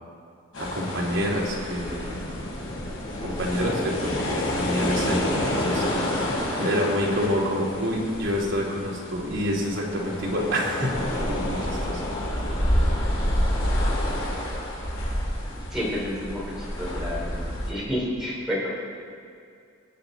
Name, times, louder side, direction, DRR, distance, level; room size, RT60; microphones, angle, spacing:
sound 1, 0.5-17.7, left 1 dB, 80° left, 3.8 m, -28 dB
voice 1, 0.6-2.2 3.2-5.8 6.6-12.0, equal, 65° right, -3 dB, 2.7 m, -27 dB
voice 2, 15.5-17.4 17.7-18.7, equal, ahead, -7 dB, 3.7 m, -30 dB
20.5 x 8.5 x 4.0 m, 2.4 s
head